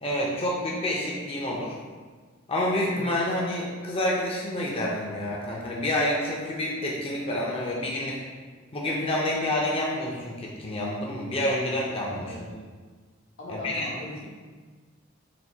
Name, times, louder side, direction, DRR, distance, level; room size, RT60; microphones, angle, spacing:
voice 1, 0.0-1.7 2.5-8.2 8.7-12.3 13.5-13.9, left 1 dB, 30° left, -3 dB, 0.6 m, -28 dB
voice 2, 12.2-12.6 13.4-14.3, left 2 dB, 80° left, -6 dB, 1.2 m, -39 dB
4.1 x 2.5 x 4.6 m, 1.5 s
head